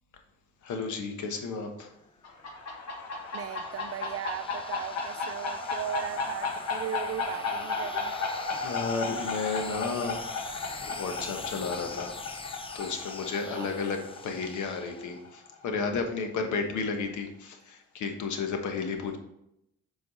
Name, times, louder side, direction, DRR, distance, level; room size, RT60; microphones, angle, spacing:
voice 1, 0.6-1.9 8.5-10.2 10.9-19.2, left 4 dB, 75° left, 1.3 m, -33 dB
sound 1, 2.0-15.4, left 4 dB, 20° left, 0.5 m, -45 dB
sound 2, 2.2-15.6, left 3 dB, 60° left, 1.6 m, -35 dB
voice 2, 3.3-8.2 13.5-13.7, right 10 dB, 50° right, 0.4 m, -37 dB
7.8 x 4.7 x 4.1 m
cardioid pair, 90°, 30 cm